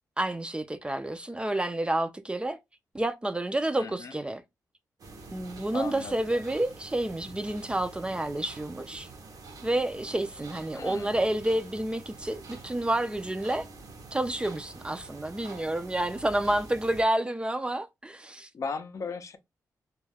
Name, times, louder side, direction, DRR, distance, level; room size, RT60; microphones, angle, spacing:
voice 1, 0.2-2.6 2.9-4.4 5.3-9.1 9.6-13.7 14.1-18.5, right 1 dB, 15° right, 0.4 m, -29 dB
voice 2, 3.8-4.2 5.7-6.4 10.7-11.2 18.5-19.4, left 5 dB, 50° left, 0.5 m, -37 dB
sound 1, 5.0-17.0, right 3 dB, 65° right, 0.7 m, -47 dB
2.3 x 2.1 x 3.3 m
cardioid pair, 85°, 7 cm